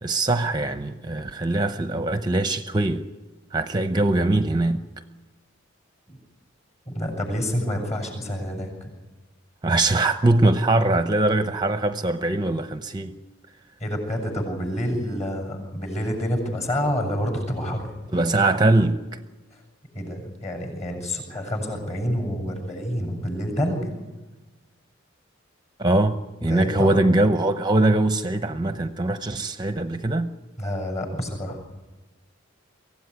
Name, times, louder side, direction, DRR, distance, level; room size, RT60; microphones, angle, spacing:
voice 1, 0.0-3.0 3.5-4.8 9.6-13.2 18.1-19.0 25.8-30.3, right 2 dB, 20° right, 0.8 m, -22 dB
voice 2, 6.9-8.9 13.8-17.9 19.5-19.6 19.9-23.9 26.4-27.0 30.6-31.6, equal, 35° left, 7.3 m, -28 dB
24.0 x 16.0 x 9.7 m
head